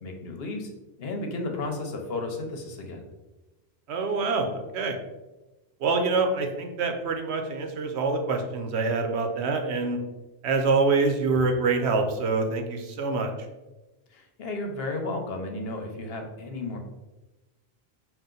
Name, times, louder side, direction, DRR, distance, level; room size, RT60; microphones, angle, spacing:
voice 1, 0.0-0.7 1.0-3.1 14.1-16.8, left 2 dB, 70° left, 3 dB, 1.0 m, -33 dB
voice 2, 3.9-5.0 5.8-10.0 10.4-13.3, right 3 dB, 90° right, 4 dB, 1.0 m, -25 dB
5.5 x 2.5 x 3.8 m, 1.1 s
omnidirectional pair, 1.1 m